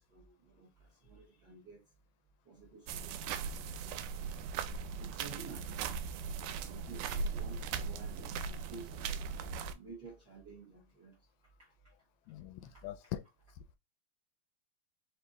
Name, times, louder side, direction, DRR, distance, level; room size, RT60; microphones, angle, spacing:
voice 1, 0.0-1.8 2.4-4.3 5.0-11.2 11.6-11.7 12.6-12.9, right 4 dB, 55° right, 1.1 m, -53 dB
sound 1, 2.9-9.7, right 5 dB, 90° right, 2.1 m, -39 dB
voice 2, 12.3-13.2 13.6-13.8, left 13 dB, 80° left, 1.8 m, -43 dB
5.1 x 2.7 x 3.6 m
omnidirectional pair, 3.6 m